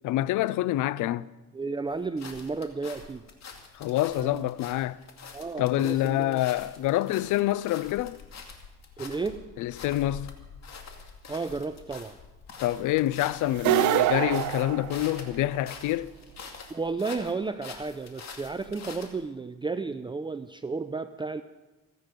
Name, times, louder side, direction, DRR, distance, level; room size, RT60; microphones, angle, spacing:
voice 1, 0.0-1.3 3.7-5.0 5.6-8.2 9.6-10.3 12.6-16.1, left 15 dB, 85° left, 0.5 m, -27 dB
voice 2, 1.5-3.2 4.2-4.5 5.3-6.4 9.0-9.4 11.3-12.2 16.7-21.4, right 4 dB, 15° right, 0.5 m, -33 dB
sound 1, 1.9-19.3, left 5 dB, 60° left, 2.4 m, -46 dB
sound 2, 13.5-15.6, right 15 dB, 75° right, 0.5 m, -25 dB
27.0 x 9.2 x 5.2 m
cardioid pair, 90°, 30 cm